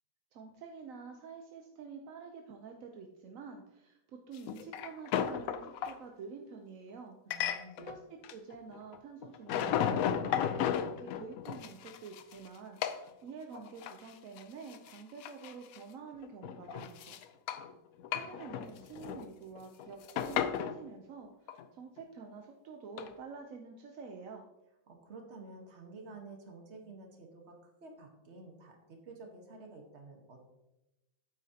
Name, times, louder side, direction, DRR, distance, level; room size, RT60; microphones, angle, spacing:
voice 1, 0.3-7.2 7.8-17.2 18.1-24.4, right 5 dB, 65° right, 3 dB, 0.8 m, -48 dB
sound 1, 4.4-5.9 7.3-8.0 8.2-9.0 9.2-12.5 12.8-13.0 13.5-14.1 14.4-14.5 14.7-15.8 16.2-17.7 18.0-19.3 19.6-20.8 21.5-21.6 23.0-23.1, left 9 dB, 80° left, 0.7 m, -34 dB
voice 2, 7.2-8.0 24.9-30.5, right 3 dB, 40° right, 2 dB, 1.4 m, -51 dB
8.8 x 8.3 x 2.8 m, 0.96 s
omnidirectional pair, 2.0 m